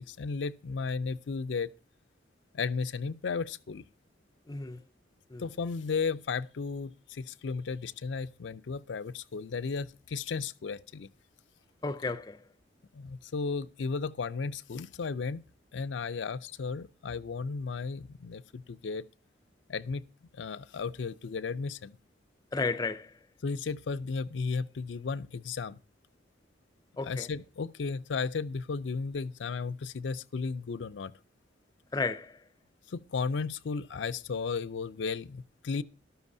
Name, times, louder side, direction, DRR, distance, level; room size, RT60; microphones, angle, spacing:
voice 1, 0.0-1.7 2.5-3.8 5.4-11.1 12.9-15.4 15.7-19.0 19.7-20.0 20.3-22.0 23.4-25.8 27.0-31.1 32.9-35.8, left 5 dB, 80° left, 0.5 m, -34 dB
voice 2, 4.5-4.8 5.3-5.4 11.8-12.4 22.5-23.1 27.0-27.3 31.9-32.3, left 3 dB, 20° left, 0.4 m, -32 dB
12.5 x 12.5 x 2.7 m
head